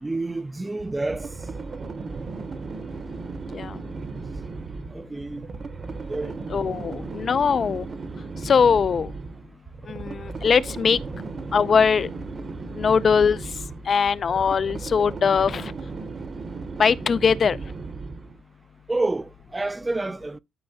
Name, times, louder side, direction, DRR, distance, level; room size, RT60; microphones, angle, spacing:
voice 1, 0.0-1.3 4.9-5.5 6.1-6.4 18.9-20.4, right 2 dB, 15° right, 0.4 m, -29 dB
sound 1, 0.8-18.4, right 4 dB, 40° right, 0.9 m, -36 dB
voice 2, 6.5-7.9 8.4-9.1 9.9-11.0 11.5-12.1 12.8-13.4 13.9-15.7 16.8-17.6, left 6 dB, 45° left, 0.5 m, -21 dB
12.0 x 4.5 x 2.7 m
cardioid pair, 90°, 0 cm